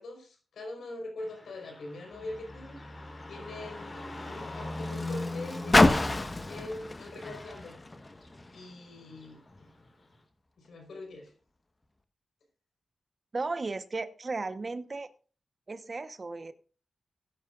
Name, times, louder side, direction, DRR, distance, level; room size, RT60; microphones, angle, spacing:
voice 1, 0.0-2.8 3.3-7.8 8.5-9.7 10.6-11.3, left 2 dB, 85° left, 2 dB, 4.8 m, -43 dB
Car passing by / Traffic noise roadway noise, 1.2-10.2, left 2 dB, 50° left, 3.9 m, -48 dB
Car, 2.1-8.7 9.5-9.6, left 2 dB, 30° left, 1.3 m, -30 dB
voice 2, 13.3-15.1 15.7-16.5, right 3 dB, 45° right, 11 dB, 1.1 m, -35 dB
17.0 x 10.5 x 2.5 m, 0.38 s
cardioid pair, 50°, 0 cm